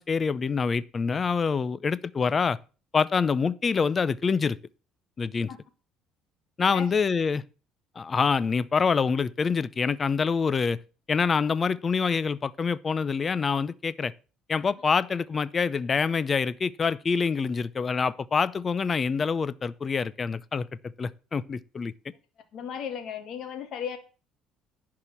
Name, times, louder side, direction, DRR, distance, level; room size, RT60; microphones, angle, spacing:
voice 1, 0.0-2.6 2.9-4.6 5.2-5.5 6.6-7.4 8.0-10.8 11.1-14.1 14.5-21.9, left 5 dB, 30° left, 0.5 m, -26 dB
voice 2, 22.5-24.0, left 8 dB, 60° left, 2.1 m, -35 dB
11.0 x 4.9 x 7.2 m
cardioid pair, 120°, 0 cm